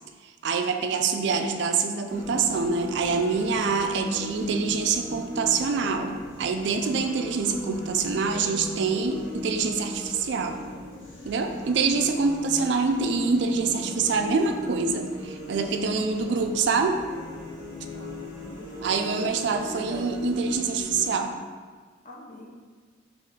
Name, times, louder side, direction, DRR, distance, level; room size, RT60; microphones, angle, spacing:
voice 1, 0.4-10.6 11.2-17.0 18.8-21.4, right 4 dB, 60° right, 6 dB, 0.3 m, -25 dB
sound 1, 2.1-21.1, left 1 dB, 90° left, 1.2 m, -39 dB
voice 2, 17.9-18.8 19.2-20.1 22.0-22.5, left 2 dB, 40° left, 0 dB, 0.6 m, -44 dB
3.8 x 3.1 x 3.7 m, 1.5 s
head